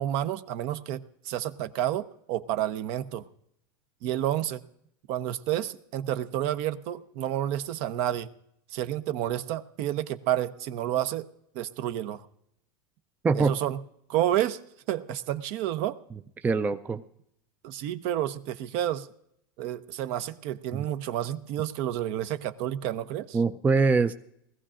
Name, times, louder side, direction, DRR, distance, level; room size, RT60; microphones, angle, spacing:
voice 1, 0.0-3.3 4.0-4.6 5.1-8.3 8.7-11.3 11.5-12.2 13.3-13.8 14.1-14.6 14.9-16.0 17.6-19.1 19.6-23.4, right 12 dB, 55° right, 12 dB, 0.7 m, -30 dB
voice 2, 13.2-13.6 16.4-17.0 20.7-20.8 23.3-24.1, right 4 dB, 15° right, 10 dB, 0.4 m, -23 dB
20.5 x 15.0 x 2.5 m, 0.74 s
supercardioid pair, 120°, 12 cm